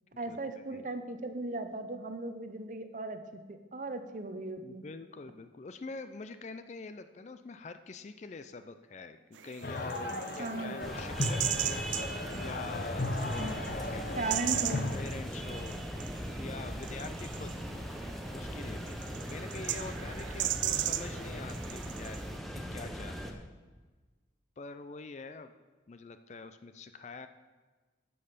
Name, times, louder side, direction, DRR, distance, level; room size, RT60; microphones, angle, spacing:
voice 1, 0.2-4.8 10.4-10.8 13.4-13.7 14.2-14.9, right 3 dB, 40° right, 8 dB, 0.7 m, -37 dB
voice 2, 4.6-14.4 14.9-16.0 16.4-17.5 18.3-22.2 22.5-23.5 24.6-25.5 25.9-27.3, left 4 dB, 35° left, 10 dB, 0.4 m, -45 dB
sound 1, 9.4-22.4, right 13 dB, 75° right, 0.4 m, -38 dB
sound 2, 9.6-15.0, left 2 dB, 50° left, 0.7 m, -36 dB
sound 3, 10.8-23.3, equal, ahead, 0.7 m, -39 dB
9.8 x 5.4 x 6.6 m, 1.3 s
head